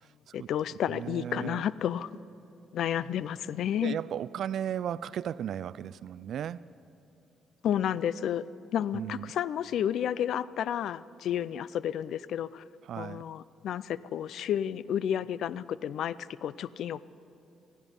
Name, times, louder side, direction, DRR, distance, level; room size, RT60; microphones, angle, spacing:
voice 1, 0.3-2.1 2.7-4.0 7.6-8.4 8.7-12.6 13.0-17.0, left 10 dB, 75° left, 19 dB, 0.4 m, -31 dB
voice 2, 0.9-1.6 3.8-6.6 8.9-9.3 12.9-13.2, right 9 dB, 70° right, 19 dB, 0.3 m, -35 dB
18.0 x 15.0 x 5.3 m, 2.8 s
cardioid pair, 90°, 0 cm